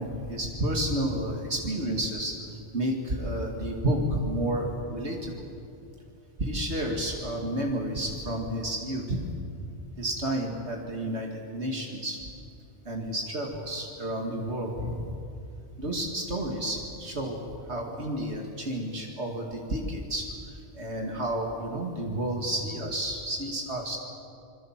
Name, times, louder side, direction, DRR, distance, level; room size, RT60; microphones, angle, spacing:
voice 1, 0.0-2.4 2.7-5.4 6.4-9.3 9.9-12.2 12.8-15.1 15.8-17.4 17.7-24.0, right 1 dB, 75° right, 1 dB, 2.6 m, -31 dB
27.0 x 22.0 x 7.4 m, 2.6 s
omnidirectional pair, 1.1 m